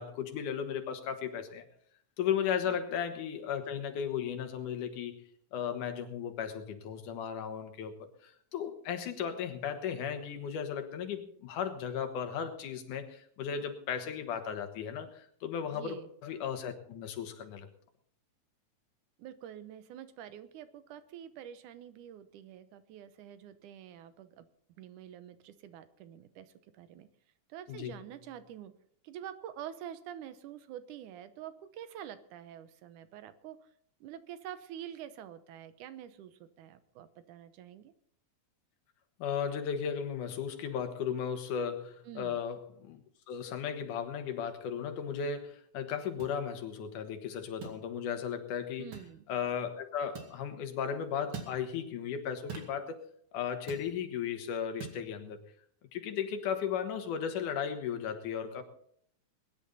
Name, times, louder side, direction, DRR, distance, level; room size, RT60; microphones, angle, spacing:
voice 1, 0.0-1.7 2.2-5.2 5.5-17.7 27.7-27.9 39.2-43.0 43.3-48.9 49.3-53.0 53.3-55.4 55.9-58.6, left 8 dB, 90° left, 7 dB, 2.9 m, -35 dB
voice 2, 15.7-16.1 19.2-24.5 24.8-27.1 27.5-28.7 29.0-33.7 34.0-37.9 42.0-42.4 48.8-49.2, right 10 dB, 85° right, 12 dB, 2.4 m, -47 dB
sound 1, 46.2-46.3 47.6-47.8 48.9-49.1 50.1-50.4 51.3-51.6 52.5-52.8 53.7-53.9 54.8-55.0, right 5 dB, 45° right, 2.8 m, -42 dB
21.5 x 10.5 x 4.1 m, 0.64 s
omnidirectional pair, 3.5 m